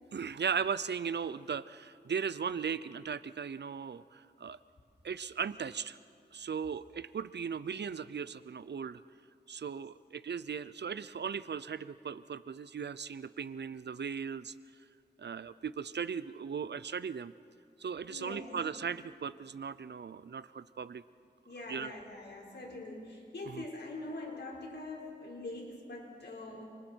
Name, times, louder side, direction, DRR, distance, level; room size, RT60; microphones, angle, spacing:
voice 1, 0.1-4.6 5.0-6.0 6.3-9.0 9.5-14.5 15.2-17.3 17.8-21.0 21.7-21.9 23.5-23.6, right 6 dB, 75° right, 16 dB, 0.6 m, -37 dB
voice 2, 18.1-18.5 21.4-26.6, left 2 dB, 75° left, -1 dB, 4.8 m, -43 dB
29.0 x 28.0 x 4.6 m, 2.3 s
wide cardioid pair, 60°, 18 cm